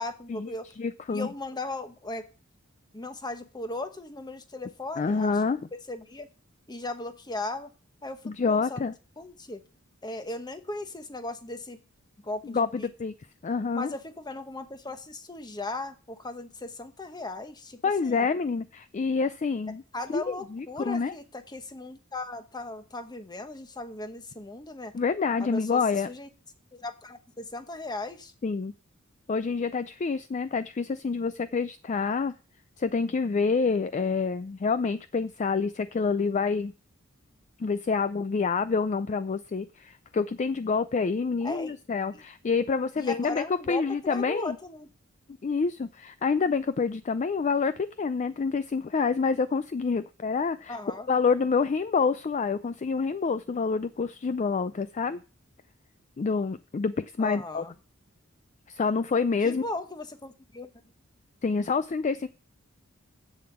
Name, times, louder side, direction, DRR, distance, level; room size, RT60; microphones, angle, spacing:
voice 1, 0.0-0.7 1.1-2.3 2.9-5.3 5.9-6.3 6.7-7.7 8.0-9.6 10.0-11.8 12.2-12.9 13.7-18.3 19.9-24.9 25.4-25.8 26.1-26.3 26.7-28.3 41.4-41.8 42.1-42.2 43.0-44.9 50.7-51.1 57.2-57.7 59.4-60.7, left 2 dB, 20° left, 8 dB, 1.0 m, -37 dB
voice 2, 0.8-1.3 5.0-5.6 8.2-8.9 12.4-13.1 13.4-13.9 17.8-19.8 20.1-21.1 24.9-26.1 28.4-28.7 29.3-32.3 32.8-36.7 37.6-44.6 45.4-50.8 51.1-55.2 56.2-57.6 58.7-59.6 61.4-62.3, left 4 dB, 35° left, 13 dB, 0.4 m, -27 dB
7.8 x 7.1 x 7.2 m, 0.35 s
head